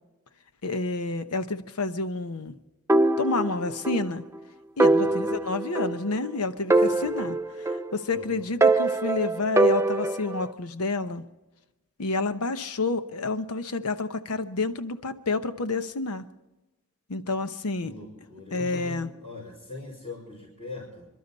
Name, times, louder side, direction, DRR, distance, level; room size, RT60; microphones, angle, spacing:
voice 1, 0.6-2.6 3.2-4.3 4.8-11.3 12.0-16.3 17.1-17.9 18.5-19.1, left 3 dB, 90° left, 10 dB, 0.9 m, -29 dB
sound 1, 2.9-4.1 4.4-4.5 4.8-6.3 6.7-8.2 8.6-10.4, right 2 dB, 10° right, 0.5 m, -23 dB
voice 2, 4.9-5.4 6.7-7.3 8.1-8.5 17.8-21.1, left 2 dB, 30° left, -8 dB, 5.2 m, -42 dB
28.0 x 12.0 x 4.1 m, 1.1 s
head